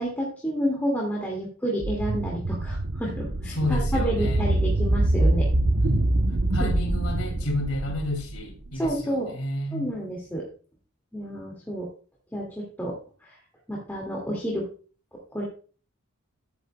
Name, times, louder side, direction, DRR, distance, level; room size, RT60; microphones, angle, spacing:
voice 1, 0.0-5.5 6.6-6.7 8.8-9.3 9.7-10.5 11.1-11.9 12.3-13.4 13.7-14.6 15.3-15.4, equal, 10° left, 2.0 m, -30 dB
sound 1, 1.8-8.9, right 1 dB, 60° right, 0.8 m, -25 dB
voice 2, 3.5-4.5 5.8-6.1 6.5-9.8, left 1 dB, 90° left, 2.3 m, -31 dB
11.0 x 9.3 x 2.2 m
head